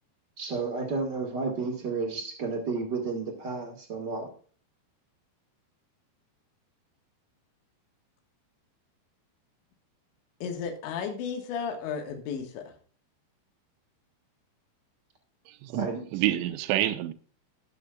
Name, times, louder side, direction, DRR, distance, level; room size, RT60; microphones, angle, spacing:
voice 1, 0.4-4.3 15.7-16.0, right 4 dB, 40° right, 1.5 m, -32 dB
voice 2, 10.4-12.6, left 6 dB, 75° left, 3.9 m, -33 dB
voice 3, 15.6-17.1, right 14 dB, 80° right, 3.0 m, -28 dB
18.5 x 7.7 x 2.4 m
omnidirectional pair, 5.4 m